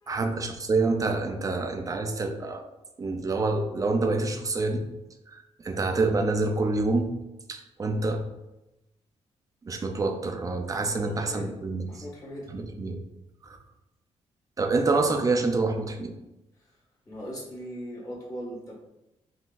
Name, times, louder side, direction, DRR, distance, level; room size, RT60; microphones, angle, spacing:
voice 1, 0.1-2.6 3.0-4.9 5.3-7.1 7.5-8.2 9.6-11.9 12.5-13.0 13.4-13.6 14.6-16.1, right 3 dB, 30° right, 5 dB, 0.4 m, -27 dB
voice 2, 10.9-11.6 11.8-12.5 17.1-18.7, equal, 30° left, -5 dB, 1.1 m, -39 dB
3.7 x 2.6 x 2.4 m, 0.95 s
cardioid pair, 115°, 12 cm